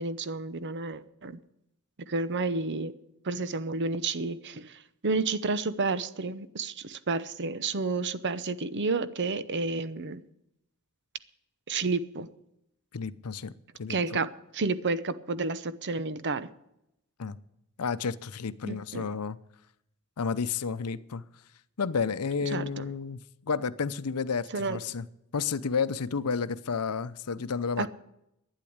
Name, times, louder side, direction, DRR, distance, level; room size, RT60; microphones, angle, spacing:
voice 1, 0.0-1.4 2.1-2.9 3.2-10.2 11.7-12.3 13.9-14.3 14.5-16.5 18.6-19.1 22.5-22.9 24.5-24.8 27.8-27.9, right 3 dB, 55° right, 0.8 m, -30 dB
voice 2, 12.9-13.5 13.8-14.2 17.2-17.4 17.8-19.4 20.2-21.2 21.8-25.1 25.3-27.9, left 5 dB, 85° left, 0.7 m, -31 dB
12.0 x 9.8 x 8.6 m
head